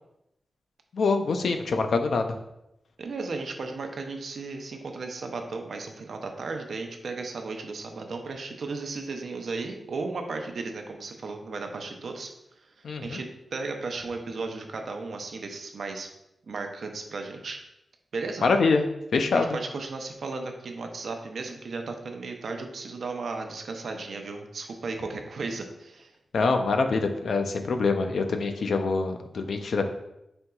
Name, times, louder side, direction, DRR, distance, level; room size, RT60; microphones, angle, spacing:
voice 1, 0.9-2.4 12.8-13.2 18.4-18.8 19.1-19.6 26.3-29.8, left 4 dB, 80° left, 6 dB, 0.4 m, -25 dB
voice 2, 3.0-12.3 13.0-16.1 16.5-17.6 18.1-18.5 19.3-26.1, right 3 dB, 70° right, 4 dB, 0.5 m, -35 dB
4.3 x 3.7 x 2.3 m, 0.85 s
wide cardioid pair, 145°, 0 cm